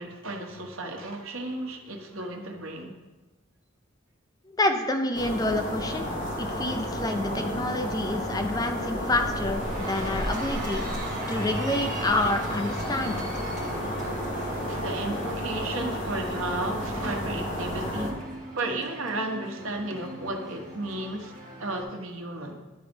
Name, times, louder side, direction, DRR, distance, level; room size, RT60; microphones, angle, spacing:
voice 1, 0.0-2.9 14.0-18.2 18.5-21.3 21.6-22.6, right 2 dB, 85° right, 2 dB, 1.2 m, -34 dB
voice 2, 4.6-6.1 6.4-10.8 11.3-13.3, left 2 dB, 20° left, 5 dB, 0.5 m, -28 dB
sound 1, 5.1-18.1, equal, 40° left, 1.6 m, -32 dB
Cheering, 7.7-21.8, right 1 dB, 40° right, 1.7 m, -41 dB
11.0 x 4.1 x 5.2 m, 1.2 s
head